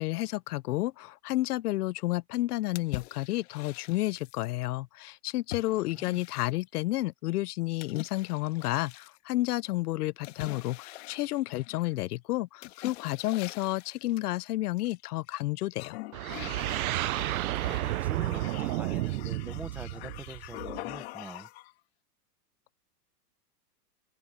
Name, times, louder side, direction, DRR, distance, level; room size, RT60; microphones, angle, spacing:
voice 1, 0.0-16.0, left 17 dB, 75° left, 0.6 m, -31 dB
sound 1, 2.7-4.6 5.5-6.8 7.8-9.2 10.2-11.9 12.6-14.1 14.8-15.4 15.7-21.7, left 17 dB, 40° left, 1.4 m, -44 dB
voice 2, 5.7-6.2 16.9-21.5, right 3 dB, 5° right, 0.6 m, -44 dB
sound 2, 16.1-21.0, right 17 dB, 65° right, 0.5 m, -32 dB
supercardioid pair, 170°, 48 cm